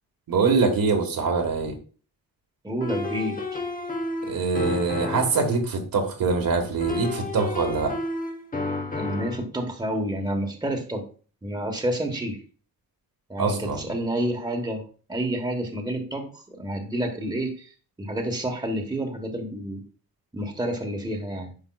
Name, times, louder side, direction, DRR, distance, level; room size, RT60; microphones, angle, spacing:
voice 1, 0.3-1.8 4.2-7.9 13.4-13.9, right 4 dB, 70° right, 3 dB, 1.6 m, -24 dB
voice 2, 2.6-3.4 9.0-11.0 11.4-12.4 13.3-17.7 18.0-19.8 20.3-21.5, right 1 dB, 10° right, 2 dB, 1.3 m, -29 dB
sound 1, 2.8-5.5 6.8-9.4, left 2 dB, 25° left, 1.0 m, -31 dB
10.0 x 5.3 x 2.3 m, 0.39 s
wide cardioid pair, 130°, 36 cm